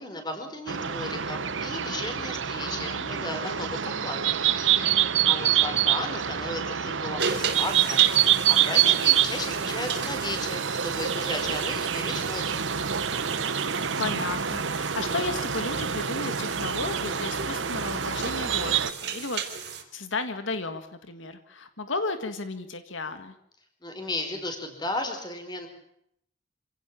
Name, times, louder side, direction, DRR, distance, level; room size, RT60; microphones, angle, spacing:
voice 1, 0.0-4.5 5.3-12.6 23.8-25.7, left 2 dB, 20° left, 6 dB, 4.7 m, -35 dB
sound 1, 0.7-18.9, right 9 dB, 80° right, 1.1 m, -26 dB
voice 2, 2.7-3.4 3.6-4.0 13.6-23.4, left 3 dB, 80° left, 9 dB, 1.8 m, -34 dB
sound 2, 7.2-19.8, right 6 dB, 60° right, 3.6 m, -36 dB
26.5 x 17.0 x 7.5 m, 0.73 s
head